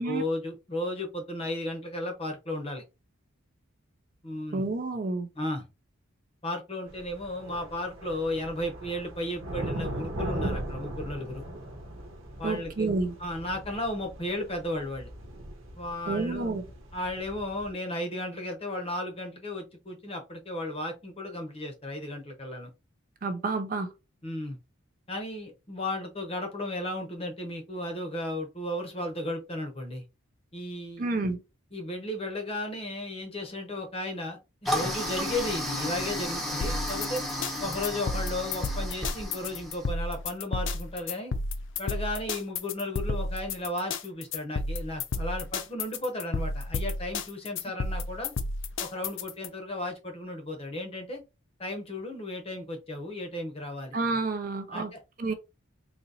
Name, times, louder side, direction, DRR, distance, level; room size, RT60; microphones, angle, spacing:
voice 1, 0.0-2.8 4.2-4.6 5.4-5.7 6.4-11.4 12.4-12.9 13.2-15.1 15.8-16.5 16.9-22.7 24.2-24.6 25.1-30.0 30.5-31.1 31.7-37.2 37.6-41.3 41.8-48.3 48.8-51.2 51.6-54.0 54.7-55.0, left 1 dB, 25° left, 0.8 m, -34 dB
voice 2, 4.5-5.3 12.4-13.1 16.1-16.6 23.2-23.9 31.0-31.4 53.9-54.9 55.2-55.3, right 3 dB, 40° right, 0.4 m, -29 dB
sound 1, 6.9-17.7, right 1 dB, 70° right, 1.0 m, -39 dB
Toilet flush, 34.7-39.9, equal, ahead, 0.7 m, -33 dB
sound 2, 36.6-49.5, left 3 dB, 60° left, 0.5 m, -32 dB
4.0 x 2.9 x 2.7 m
head